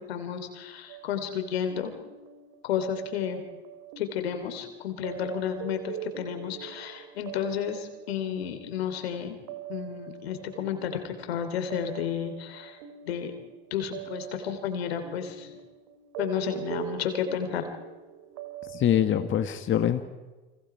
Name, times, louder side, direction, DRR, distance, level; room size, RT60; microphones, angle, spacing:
voice 1, 0.1-1.9 2.6-3.4 4.0-9.4 9.7-12.8 13.1-13.3 13.7-15.6 16.2-17.6, left 9 dB, 80° left, 7 dB, 3.1 m, -32 dB
sound 1, 0.9-19.3, right 10 dB, 70° right, 2.7 m, -43 dB
voice 2, 18.7-20.0, left 10 dB, 40° left, 8 dB, 1.5 m, -24 dB
29.5 x 25.5 x 4.8 m, 1.2 s
hypercardioid pair, 75°, 30 cm